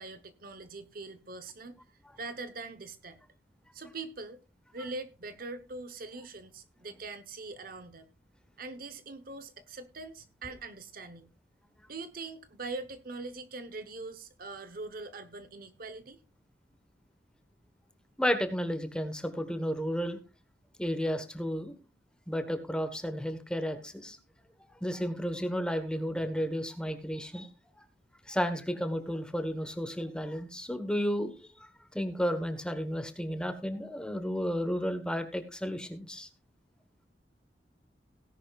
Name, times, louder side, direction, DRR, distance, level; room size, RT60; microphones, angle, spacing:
voice 1, 0.0-1.8 2.2-3.2 3.7-4.4 4.7-8.1 8.6-11.3 11.9-16.2, right 3 dB, 55° right, 1.0 m, -42 dB
voice 2, 18.2-20.2 20.8-21.7 22.3-24.2 24.8-27.5 28.3-31.3 31.9-36.3, equal, 5° left, 1.3 m, -32 dB
17.5 x 10.5 x 2.4 m
head